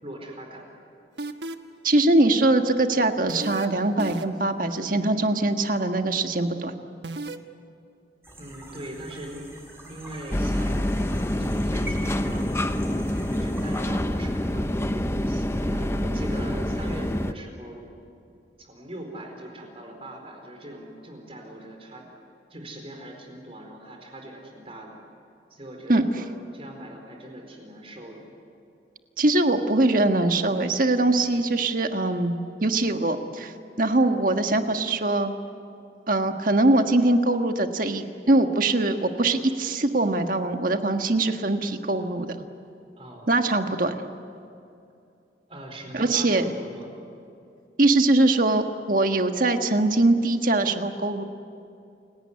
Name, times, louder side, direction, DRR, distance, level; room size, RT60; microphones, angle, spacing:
voice 1, 0.0-0.7 8.4-10.9 11.4-14.7 15.3-17.8 18.6-22.1 22.5-24.9 25.5-28.3 31.3-31.6 43.0-43.3 45.5-46.9, right 1 dB, 35° right, 2 dB, 4.4 m, -41 dB
sound 1, 1.2-1.8 3.3-3.7 4.0-4.5 7.0-7.4, right 2 dB, 85° right, 1.2 m, -33 dB
voice 2, 1.8-6.7 25.9-26.0 29.2-35.3 36.1-42.4 43.3-44.0 45.9-46.4 47.8-51.2, right 2 dB, 50° right, 6 dB, 1.5 m, -22 dB
sound 2, 8.2-13.8, right 1 dB, 15° right, 6.1 m, -44 dB
sound 3, 10.3-17.3, left 1 dB, 15° left, 0.8 m, -26 dB
28.5 x 17.5 x 9.6 m, 2.6 s
head